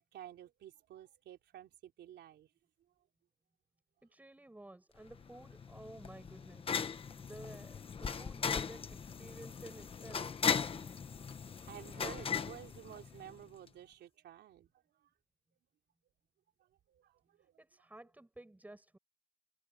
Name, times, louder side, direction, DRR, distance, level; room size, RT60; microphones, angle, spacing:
voice 1, 0.0-2.5 11.6-15.1 16.6-17.5, right 11 dB, 75° right, 3.9 m, -52 dB
voice 2, 4.0-6.7 7.2-10.3 17.6-19.0, right 1 dB, 10° right, 7.4 m, -53 dB
sound 1, 5.1-13.4, left 6 dB, 30° left, 1.1 m, -38 dB
cardioid pair, 145°, 18 cm